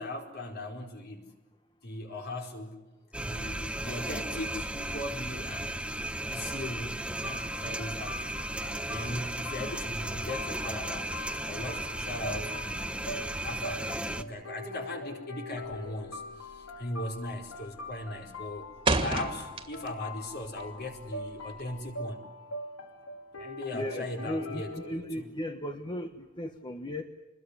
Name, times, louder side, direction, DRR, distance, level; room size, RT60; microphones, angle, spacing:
voice 1, 0.0-1.4 1.8-2.8 3.2-8.5 8.9-13.1 13.4-18.7 19.0-22.3 23.4-25.3, left 1 dB, 50° left, 2 dB, 4.7 m, -39 dB
sound 1, 3.1-14.2, right 1 dB, 5° right, 0.9 m, -35 dB
sound 2, 7.2-25.0, left 2 dB, 85° left, 4.0 m, -43 dB
sound 3, 15.6-16.0 16.3-16.7 17.0-17.4 17.8-20.1 20.4-21.9, right 3 dB, 25° right, 2.4 m, -31 dB
voice 2, 23.7-27.0, left 1 dB, 20° left, 5 dB, 1.3 m, -36 dB
27.5 x 21.5 x 9.9 m, 1.1 s
head